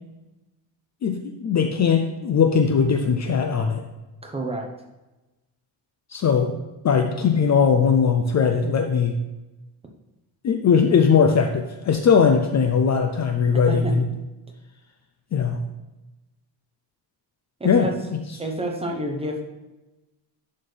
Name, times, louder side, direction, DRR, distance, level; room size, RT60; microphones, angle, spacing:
voice 1, 1.0-3.8 6.1-6.5 6.8-9.2 10.4-14.1 15.3-15.6 17.6-17.9, left 6 dB, 40° left, 5 dB, 0.5 m, -19 dB
voice 2, 4.2-4.7 13.7-13.9 17.6-17.9 18.4-19.4, right 1 dB, 15° right, 1 dB, 0.9 m, -28 dB
11.0 x 4.2 x 3.3 m, 1.1 s
wide cardioid pair, 170°, 44 cm